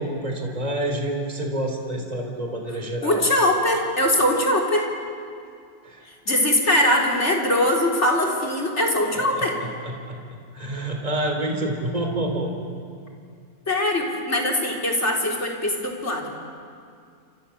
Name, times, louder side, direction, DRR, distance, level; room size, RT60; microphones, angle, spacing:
voice 1, 0.0-3.2 5.8-6.0 9.3-9.4 9.8-10.2 10.5-12.5, right 1 dB, 20° right, 2 dB, 3.8 m, -28 dB
voice 2, 3.0-4.9 6.0-9.6 13.7-16.3, left 1 dB, 40° left, 2 dB, 4.1 m, -22 dB
29.0 x 26.5 x 7.2 m, 2.3 s
omnidirectional pair, 1.9 m